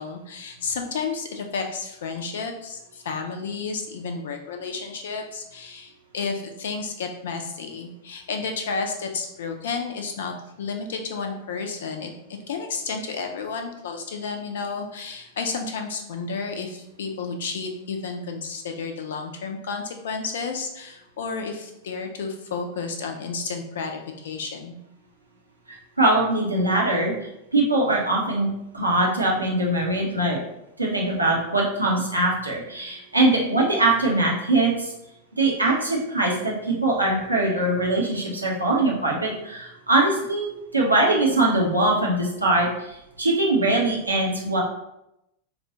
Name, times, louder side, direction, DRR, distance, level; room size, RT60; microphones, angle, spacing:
voice 1, 0.0-12.1 12.5-24.8, left 4 dB, 60° left, 3 dB, 0.4 m, -31 dB
voice 2, 25.7-27.1 27.5-28.5 28.7-30.4 30.8-34.9 35.3-44.6, right 2 dB, 85° right, -3 dB, 0.8 m, -22 dB
4.0 x 2.2 x 2.8 m, 0.85 s
figure-of-eight pair, 90°, 0 cm